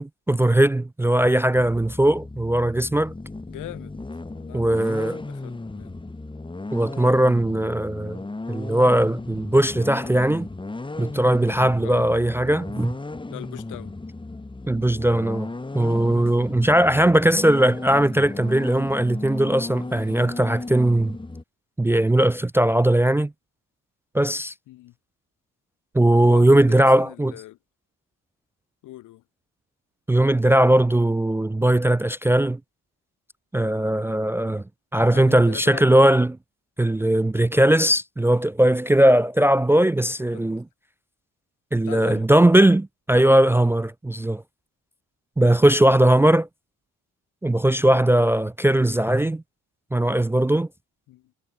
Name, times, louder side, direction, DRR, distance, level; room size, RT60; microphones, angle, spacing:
voice 1, 0.0-3.1 4.5-5.2 6.7-8.2 8.5-10.5 11.0-13.0 14.7-15.5 15.7-21.2 21.8-23.3 24.1-24.5 25.9-27.3 30.1-32.6 33.5-34.6 34.9-36.4 36.8-40.6 41.7-44.4 45.4-46.5 47.4-49.4 49.9-50.7, right 1 dB, 10° right, 0.3 m, -19 dB
sound 1, 1.5-21.4, left 2 dB, 15° left, 3.1 m, -35 dB
voice 2, 3.5-4.0 4.3-6.0 11.8-12.3 13.3-14.0 16.4-16.6 24.7-24.9 26.2-27.6 28.8-29.2 32.4-32.5 35.1-35.8 40.3-40.4 41.9-42.3 45.7-45.9 51.1-51.3, left 16 dB, 90° left, 3.6 m, -41 dB
cardioid pair, 90°, 30 cm